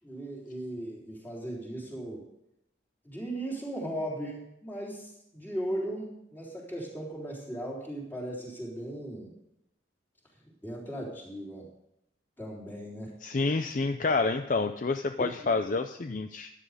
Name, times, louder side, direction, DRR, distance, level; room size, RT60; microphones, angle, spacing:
voice 1, 0.0-2.2 3.0-9.3 10.6-11.7 12.4-13.1, right 1 dB, 10° left, -3 dB, 3.6 m, -37 dB
voice 2, 13.2-16.5, left 3 dB, 40° left, 8 dB, 0.5 m, -28 dB
13.0 x 10.0 x 5.0 m, 0.83 s
head